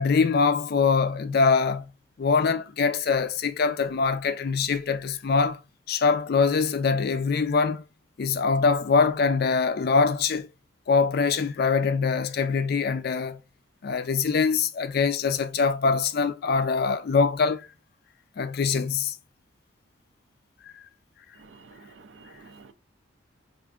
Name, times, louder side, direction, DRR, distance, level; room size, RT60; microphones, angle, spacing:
voice 1, 0.0-1.9 2.2-5.6 5.9-7.8 8.2-10.5 10.9-13.4 13.8-17.7 18.4-19.2, left 5 dB, 50° left, 0.4 m, -23 dB
voice 2, 21.4-22.7, right 4 dB, 65° right, 0.4 m, -50 dB
4.5 x 2.5 x 2.3 m
head